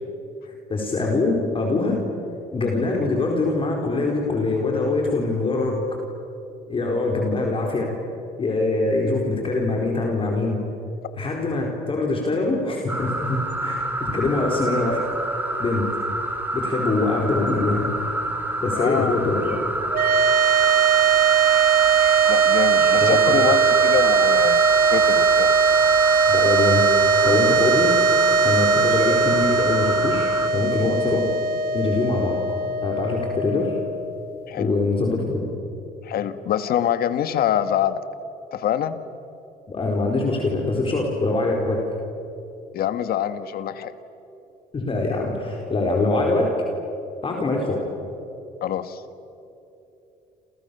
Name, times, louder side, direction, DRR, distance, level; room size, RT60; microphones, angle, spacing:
voice 1, 0.4-2.0 2.5-6.0 6.7-7.9 8.4-10.6 11.2-15.0 15.6-15.9 16.5-17.9 18.6-19.6 22.9-23.5 26.3-26.8 27.2-28.0 28.4-31.3 31.7-32.4 32.8-33.8 34.6-35.5 39.7-41.8 44.7-46.7 47.2-47.9, left 3 dB, 30° left, 0 dB, 4.4 m, -23 dB
sound 1, 12.9-30.5, right 1 dB, 10° right, 4.0 m, -27 dB
voice 2, 18.7-19.3 22.3-25.5 34.5-34.8 36.0-38.0 38.5-39.0 42.7-43.9 48.6-49.0, left 10 dB, 65° left, 11 dB, 1.7 m, -25 dB
sound 2, 19.9-34.3, right 6 dB, 60° right, 2.6 m, -19 dB
29.0 x 28.5 x 7.0 m, 2.9 s
cardioid pair, 110°, 17 cm